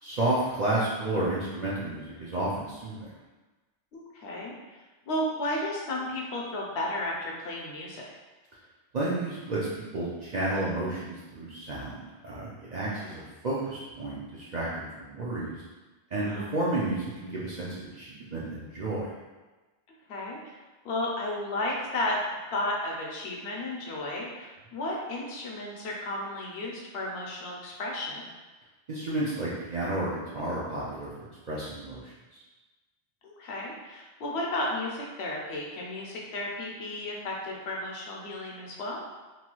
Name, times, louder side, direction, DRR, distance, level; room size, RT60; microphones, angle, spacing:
voice 1, 0.0-3.1 8.9-12.0 12.2-15.6 16.1-19.1 28.9-32.4, right 2 dB, 60° right, -7 dB, 0.4 m, -31 dB
voice 2, 3.9-4.5 5.1-8.1 13.0-13.2 16.3-16.5 20.1-20.5 20.8-22.2 22.5-28.3 33.2-39.0, left 1 dB, 70° left, -2 dB, 0.9 m, -33 dB
2.9 x 2.3 x 2.9 m, 1.2 s
omnidirectional pair, 1.2 m